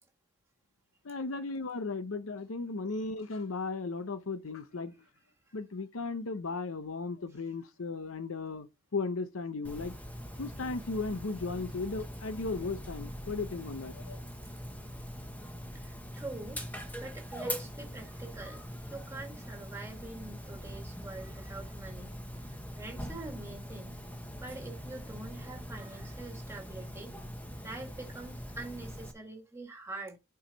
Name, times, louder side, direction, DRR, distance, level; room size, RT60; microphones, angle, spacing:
voice 1, 1.0-4.9 5.5-8.7 8.9-10.0 10.4-14.2, left 3 dB, 80° left, 0.7 m, -36 dB
Dog, 9.6-29.1, equal, 10° left, 1.0 m, -42 dB
voice 2, 15.7-16.6 17.0-22.2 22.5-24.0 24.4-27.1 27.6-30.2, right 2 dB, 15° right, 1.8 m, -45 dB
9.3 x 4.7 x 4.0 m
head